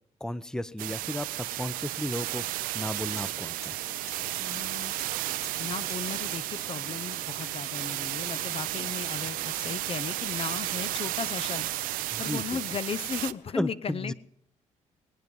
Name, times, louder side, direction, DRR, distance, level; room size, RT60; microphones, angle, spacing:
voice 1, 0.2-3.8 12.1-12.6 13.6-14.1, left 1 dB, 5° left, 16 dB, 0.6 m, -34 dB
sound 1, 0.8-13.3, right 16 dB, 85° right, 0.5 m, -33 dB
sound 2, 2.7-2.8 3.2-3.3 3.6-3.7 4.1-4.2 4.5-4.6 5.0-5.1 5.4-5.6 5.9-6.0 6.3-6.4 7.1-7.3 7.7-8.8, left 3 dB, 20° left, 3.0 m, -50 dB
sound 3, 3.1-13.6, left 5 dB, 75° left, 1.6 m, -52 dB
voice 2, 4.4-5.0 5.6-11.7 12.2-14.1, left 6 dB, 40° left, 15 dB, 0.6 m, -36 dB
21.5 x 9.3 x 5.4 m, 0.75 s
supercardioid pair, 70°, 14 cm